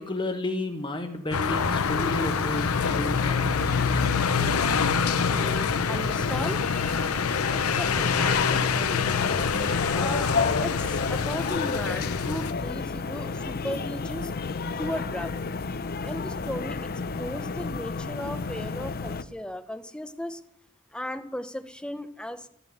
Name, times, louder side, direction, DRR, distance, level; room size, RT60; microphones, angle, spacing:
voice 1, 0.0-3.7, left 1 dB, 20° left, 5 dB, 1.1 m, -32 dB
sound 1, 1.3-12.5, left 6 dB, 85° left, 0.7 m, -26 dB
sound 2, 1.5-19.2, left 4 dB, 45° left, 0.6 m, -31 dB
voice 2, 5.2-7.1 7.5-9.4 9.7-14.3 14.7-15.3 16.0-16.9 17.1-20.4 20.9-22.5, left 1 dB, 5° left, 11 dB, 0.7 m, -36 dB
13.5 x 7.1 x 8.7 m, 0.78 s
head